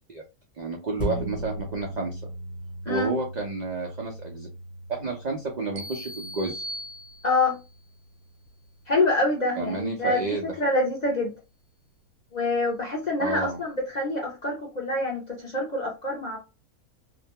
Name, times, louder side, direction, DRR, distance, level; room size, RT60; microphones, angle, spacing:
voice 1, 0.6-2.2 2.9-4.5 4.9-6.6 9.6-10.5 13.2-13.6, right 3 dB, 85° right, 0.3 m, -30 dB
sound 1, 1.0-9.8 10.2-10.3, right 1 dB, 35° left, 1.0 m, -39 dB
sound 2, 5.8-7.7, equal, 65° right, 0.9 m, -39 dB
voice 2, 7.2-7.6 8.9-10.2 10.6-11.3 12.3-16.4, left 2 dB, 50° left, 0.5 m, -26 dB
2.6 x 2.1 x 2.8 m
omnidirectional pair, 1.5 m